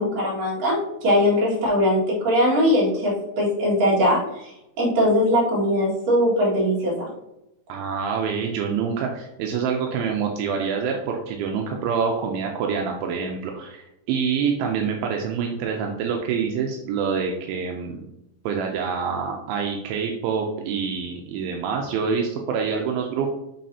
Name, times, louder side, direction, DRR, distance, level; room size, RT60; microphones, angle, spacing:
voice 1, 0.0-7.1, equal, 50° right, -5 dB, 2.7 m, -21 dB
voice 2, 7.7-18.0 18.5-23.3, right 6 dB, 85° right, 1 dB, 2.2 m, -26 dB
7.4 x 4.7 x 2.8 m, 0.88 s
omnidirectional pair, 4.7 m